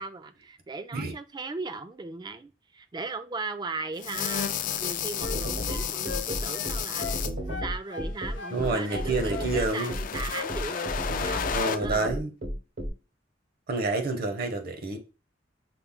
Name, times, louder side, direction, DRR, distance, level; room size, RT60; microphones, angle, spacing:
voice 1, 0.0-7.1 7.5-12.2, right 3 dB, 25° right, 0.3 m, -37 dB
sound 1, 4.0-7.3 8.4-11.8, left 8 dB, 50° left, 0.4 m, -33 dB
sound 2, 4.7-5.4 5.7-7.2 7.5-8.6 8.9-9.9 10.3-11.4 11.7-11.9, left 5 dB, 80° left, 0.7 m, -39 dB
sound 3, 5.2-12.9, equal, 85° right, 1.4 m, -32 dB
voice 2, 8.5-10.0 11.5-12.3 13.7-15.0, right 3 dB, 55° right, 0.8 m, -28 dB
5.8 x 2.0 x 3.5 m
head